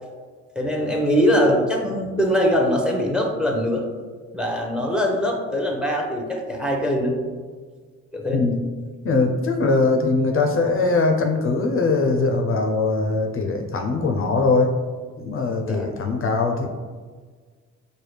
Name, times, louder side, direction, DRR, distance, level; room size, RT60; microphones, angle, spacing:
voice 1, 0.6-3.9 4.3-7.2 8.1-8.4 15.6-15.9, equal, 5° right, 1 dB, 0.6 m, -22 dB
voice 2, 9.0-14.7 15.2-16.7, left 3 dB, 45° left, 3 dB, 0.4 m, -21 dB
4.8 x 2.2 x 3.2 m, 1.5 s
cardioid pair, 90°, 30 cm